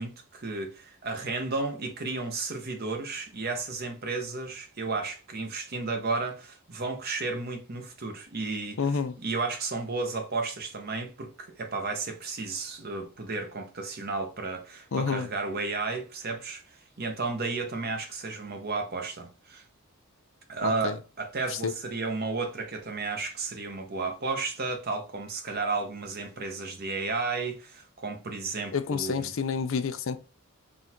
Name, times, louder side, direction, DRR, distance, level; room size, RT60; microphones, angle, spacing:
voice 1, 0.0-8.8 9.2-19.6 20.5-29.3, right 3 dB, 45° right, 0.9 m, -33 dB
voice 2, 8.8-9.2 14.9-15.3 20.6-21.0 21.5-21.7 28.7-30.2, left 5 dB, 65° left, 0.5 m, -29 dB
3.8 x 2.5 x 4.3 m
head